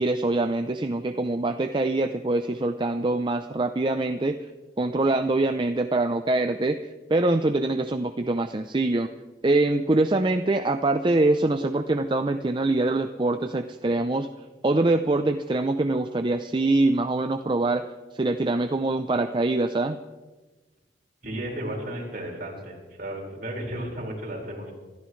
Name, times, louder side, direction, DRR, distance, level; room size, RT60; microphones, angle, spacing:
voice 1, 0.0-4.4 4.8-6.8 7.1-9.1 9.4-14.3 14.6-17.8 18.1-20.0, right 2 dB, 25° right, 8 dB, 0.5 m, -24 dB
voice 2, 21.2-24.7, right 1 dB, 50° right, -2 dB, 5.0 m, -34 dB
26.5 x 14.0 x 3.2 m, 1.2 s
head